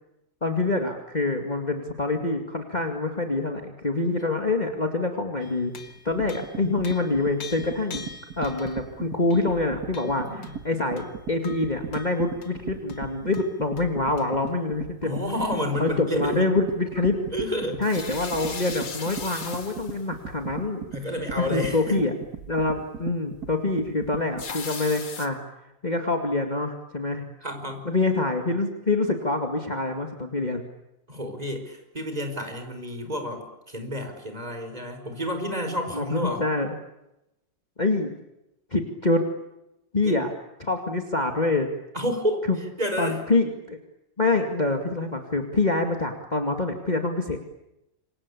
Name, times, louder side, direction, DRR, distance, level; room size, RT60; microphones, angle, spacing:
voice 1, 0.4-5.7 6.0-8.1 8.4-10.2 10.6-15.2 15.8-17.2 17.8-20.8 21.4-22.1 22.5-25.4 25.8-27.2 27.8-30.6 35.9-36.7 37.8-38.1 38.7-39.2 39.9-40.3 40.6-41.7 42.5-42.6 43.0-43.8 44.2-47.4, left 2 dB, 25° left, 4 dB, 2.4 m, -26 dB
sound 1, 5.4-8.8 9.3-9.5 9.9-10.6 11.0-12.6 12.9-13.0 13.3-13.9 14.2-14.3 16.8-17.1 17.8-20.0 24.4-25.3, left 5 dB, 85° left, 2.9 m, -40 dB
sound 2, 5.9-24.5, right 7 dB, 55° right, 2.1 m, -38 dB
voice 2, 10.1-10.5 15.0-16.5 17.3-17.8 20.9-22.1 27.1-27.9 31.1-36.4 40.0-40.2 41.9-42.5 42.8-43.2, equal, 20° right, 5 dB, 5.3 m, -30 dB
28.0 x 24.5 x 8.5 m, 0.91 s
omnidirectional pair, 2.0 m